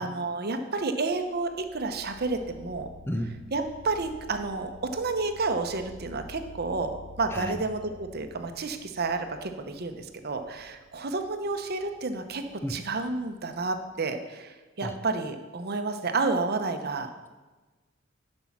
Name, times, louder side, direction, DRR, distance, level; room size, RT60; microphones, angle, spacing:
voice 1, 0.0-2.9 3.5-17.1, right 3 dB, 50° right, 7 dB, 0.8 m, -30 dB
sound 1, 1.1-13.9, left 2 dB, 30° left, 0.9 m, -51 dB
voice 2, 3.1-3.4 7.3-7.6 12.6-12.8 14.8-15.0, equal, 10° left, 7 dB, 0.5 m, -32 dB
11.0 x 5.4 x 6.0 m, 1.2 s
head